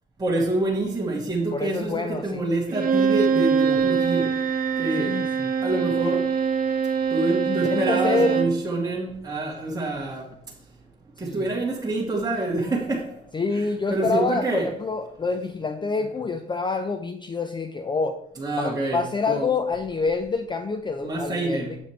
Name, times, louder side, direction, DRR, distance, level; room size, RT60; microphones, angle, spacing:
voice 1, 0.2-4.3 4.8-5.1 5.6-6.2 7.1-10.2 11.2-13.1 13.5-14.7 18.4-19.5 21.0-21.7, right 2 dB, 20° right, 1.7 m, -27 dB
voice 2, 1.5-2.4 5.0-5.5 7.4-8.4 11.2-11.5 13.3-18.2 18.6-21.8, left 4 dB, 25° left, 0.5 m, -27 dB
Bowed string instrument, 2.7-8.6, right 6 dB, 45° right, 1.1 m, -23 dB
7.7 x 4.9 x 4.4 m
cardioid pair, 90°, 20 cm